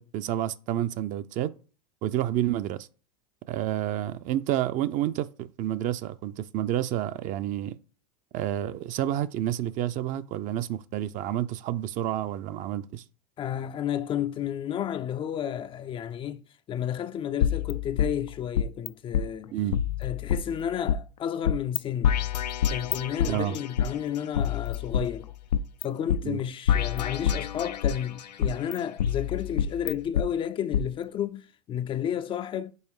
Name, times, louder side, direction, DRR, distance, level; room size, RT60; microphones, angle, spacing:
voice 1, 0.0-1.5 2.0-2.9 3.5-7.7 8.3-13.0 19.5-19.8 23.3-23.6 26.2-26.4, right 12 dB, 40° right, 0.5 m, -29 dB
voice 2, 13.4-16.4 16.7-19.5 20.0-22.2 22.7-25.3 25.8-32.7, left 9 dB, 25° left, 0.4 m, -32 dB
sound 1, 17.4-18.9 19.1-19.3 19.7-21.0 21.5-21.8 22.0-23.9 24.4-25.8 26.1-26.2 26.7-28.0 28.4-30.3 30.7-30.8, left 8 dB, 85° left, 0.5 m, -27 dB
5.5 x 4.3 x 4.8 m
hypercardioid pair, 95°, 21 cm